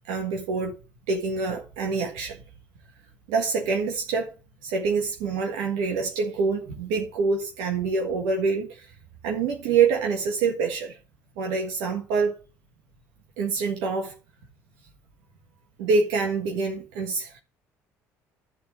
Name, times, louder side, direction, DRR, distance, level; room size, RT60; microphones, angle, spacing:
voice 1, 0.1-0.7 1.1-2.4 3.3-4.3 4.6-8.9 9.2-11.0 11.4-12.3 13.4-14.1 15.8-17.4, right 4 dB, 80° right, 1.7 m, -26 dB
11.0 x 4.1 x 7.5 m
hypercardioid pair, 65°, 8 cm